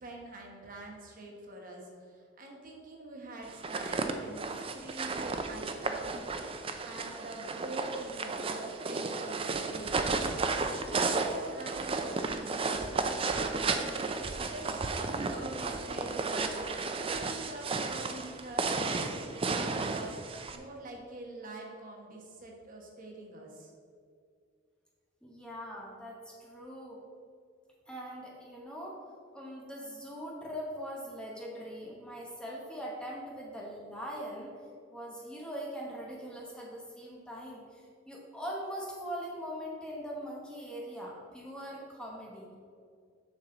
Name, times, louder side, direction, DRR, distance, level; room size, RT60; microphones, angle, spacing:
voice 1, 0.0-6.2 6.8-14.0 14.4-16.6 17.1-20.1 20.5-23.7, right 2 dB, 45° right, 0 dB, 1.2 m, -45 dB
sound 1, 3.5-20.6, right 3 dB, 30° right, 0.5 m, -33 dB
voice 2, 25.2-27.0 27.9-29.0 29.3-34.5 34.9-42.5, equal, 5° left, -3 dB, 1.1 m, -41 dB
7.3 x 6.1 x 3.9 m, 2.2 s
head